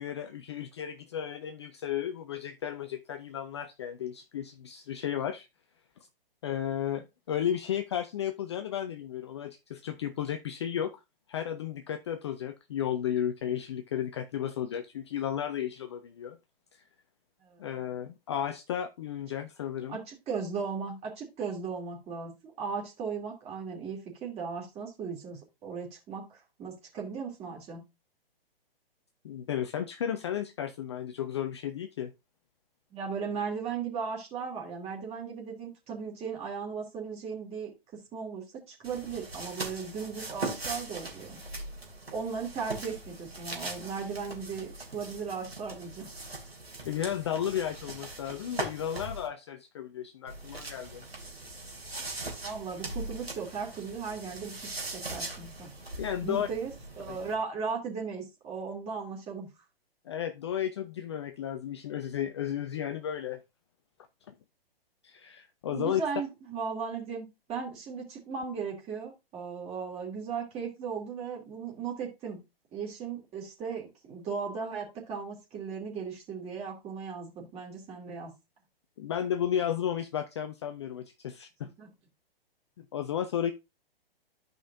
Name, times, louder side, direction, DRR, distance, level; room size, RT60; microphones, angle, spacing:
voice 1, 0.0-5.5 6.4-10.9 11.3-16.4 17.6-20.0 29.2-32.1 46.8-51.1 56.0-56.5 57.1-57.2 60.1-63.4 65.0-66.0 79.0-81.7 82.8-83.5, left 9 dB, 30° left, 0.4 m, -33 dB
voice 2, 19.9-27.8 32.9-41.4 42.1-46.1 52.4-55.7 56.2-56.7 57.0-59.5 65.7-72.4 72.7-78.3 81.8-81.9, right 5 dB, 20° right, 2.6 m, -37 dB
sound 1, 38.8-49.3 50.3-57.3, right 2 dB, 85° right, 2.8 m, -40 dB
13.0 x 5.1 x 2.6 m
figure-of-eight pair, 120°, 30 cm